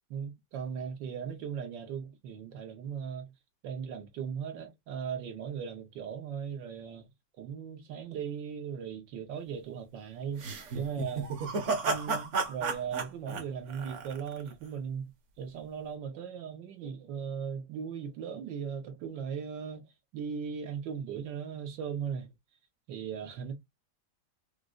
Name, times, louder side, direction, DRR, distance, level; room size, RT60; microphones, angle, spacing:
voice 1, 0.1-3.3 3.6-7.1 7.4-10.5 10.7-11.3 11.9-15.1 15.4-19.9 20.1-22.3 22.9-23.5, right 7 dB, 80° right, 1.5 m, -38 dB
sound 1, 10.4-14.5, right 4 dB, 55° right, 0.9 m, -33 dB
4.9 x 2.1 x 2.4 m
omnidirectional pair, 1.9 m